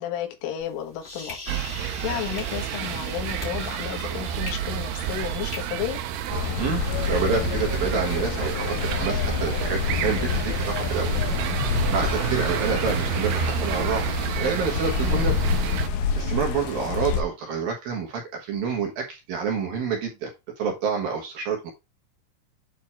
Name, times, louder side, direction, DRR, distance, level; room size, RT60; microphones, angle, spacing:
voice 1, 0.0-1.4 1.6-6.0 15.0-15.4, left 11 dB, 90° left, 4.0 m, -33 dB
sound 1, 0.6-5.6, left 3 dB, 20° left, 1.6 m, -40 dB
sound 2, 1.5-15.9, right 9 dB, 80° right, 2.3 m, -30 dB
sound 3, 6.3-17.2, left 5 dB, 75° left, 2.4 m, -27 dB
voice 2, 6.6-11.1 11.9-15.4 16.1-20.3 20.6-21.7, right 6 dB, 65° right, 2.5 m, -28 dB
9.1 x 4.0 x 4.3 m
omnidirectional pair, 5.6 m